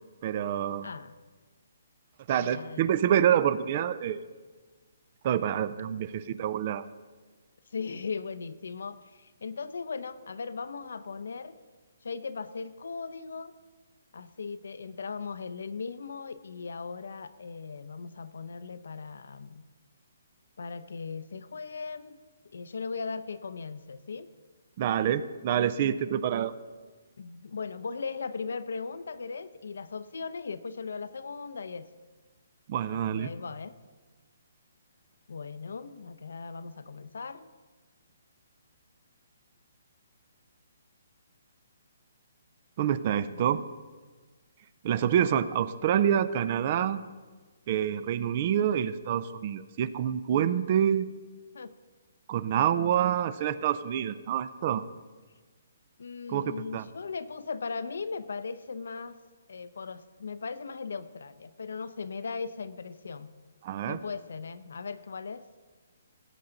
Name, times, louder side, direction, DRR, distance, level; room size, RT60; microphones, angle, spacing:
voice 1, 0.2-0.9 2.3-4.2 5.2-6.8 24.8-26.5 32.7-33.3 42.8-43.6 44.8-47.0 47.7-51.1 52.3-54.8 56.3-56.9 63.6-64.0, right 9 dB, 30° right, 15 dB, 0.4 m, -27 dB
voice 2, 0.8-1.2 2.3-2.9 5.9-6.0 7.7-11.6 12.0-13.5 14.1-19.6 20.6-24.3 27.2-31.9 32.9-33.8 35.3-37.5 43.3-43.5 51.5-51.7 56.0-59.2 59.5-63.3 63.9-65.4, left 5 dB, 75° left, 13 dB, 0.7 m, -38 dB
17.0 x 7.8 x 3.9 m, 1.4 s
hypercardioid pair, 170°, 0 cm